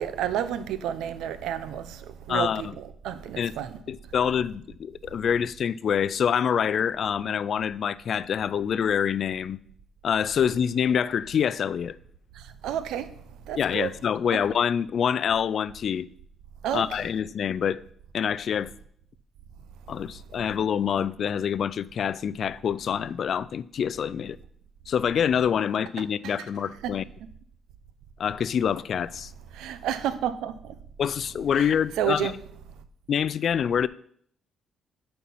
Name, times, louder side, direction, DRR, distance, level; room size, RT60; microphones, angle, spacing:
voice 1, 0.0-3.8 12.4-13.1 13.5-13.9 16.6-17.0 26.2-26.4 29.5-30.7 31.5-31.7 32.0-32.3, right 10 dB, 85° right, 0.6 m, -30 dB
voice 2, 2.3-2.7 3.4-3.5 3.9-9.6 10.0-12.0 13.6-16.1 16.7-17.8 18.1-18.7 19.9-24.4 24.9-27.0 28.2-29.3 31.0-32.3 33.1-33.9, left 8 dB, 60° left, 0.3 m, -26 dB
8.3 x 4.5 x 5.4 m
cardioid pair, 90°, 0 cm